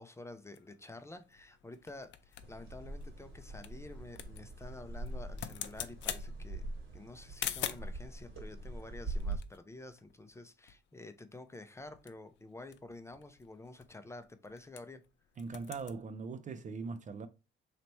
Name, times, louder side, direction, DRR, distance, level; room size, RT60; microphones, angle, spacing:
voice 1, 0.0-15.0, left 2 dB, 15° left, 0.5 m, -50 dB
sound 1, 0.5-8.0 8.8-10.4 10.7-10.8 11.1-11.4 11.8-15.1 15.3-16.0, left 11 dB, 70° left, 0.5 m, -45 dB
sound 2, 2.4-9.4, right 2 dB, 70° right, 2.0 m, -43 dB
voice 2, 15.4-17.3, right 4 dB, 40° right, 0.4 m, -41 dB
3.3 x 2.9 x 4.0 m
cardioid pair, 90°, 20 cm